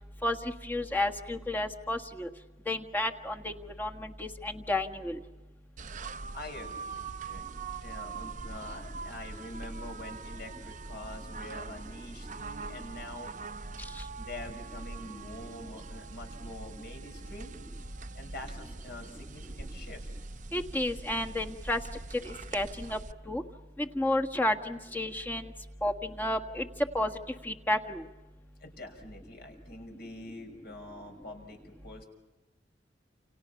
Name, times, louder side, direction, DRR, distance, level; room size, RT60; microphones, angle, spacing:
voice 1, 0.2-2.3 2.7-3.5 3.8-5.2 20.5-21.8 22.2-23.0 23.3-23.4 23.8-25.5 25.8-26.7 26.9-27.1 27.4-28.0, left 1 dB, 10° left, 3 dB, 1.6 m, -31 dB
sound 1, 5.8-23.1, right 3 dB, 45° right, 0.8 m, -42 dB
voice 2, 6.3-7.4 7.8-13.3 14.2-17.5 18.1-20.1 28.6-32.1, left 1 dB, 60° left, 4 dB, 6.1 m, -45 dB
29.5 x 29.0 x 5.9 m, 1.2 s
head